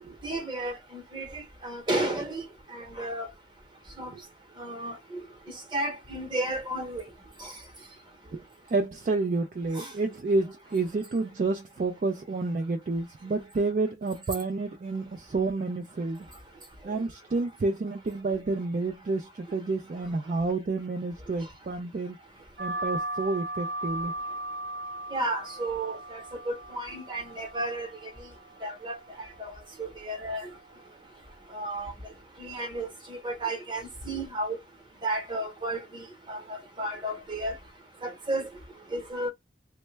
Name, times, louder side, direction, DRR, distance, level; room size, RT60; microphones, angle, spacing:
voice 1, 0.2-1.3 1.6-2.4 2.7-3.3 4.0-4.1 4.6-5.2 5.7-7.0 7.4-7.5 9.8-9.9 25.1-27.9 28.6-29.0 29.4-29.5 29.8-30.5 31.5-31.9 32.4-34.6 35.0-36.4 36.8-37.5 38.0-38.4 38.9-39.3, right 1 dB, 25° right, 0.9 m, -32 dB
voice 2, 8.3-16.3 16.8-22.2 22.6-24.1, right 3 dB, 45° right, 0.3 m, -30 dB
sound 1, 22.6-31.6, right 1 dB, 75° right, 0.9 m, -38 dB
3.1 x 2.1 x 3.2 m
head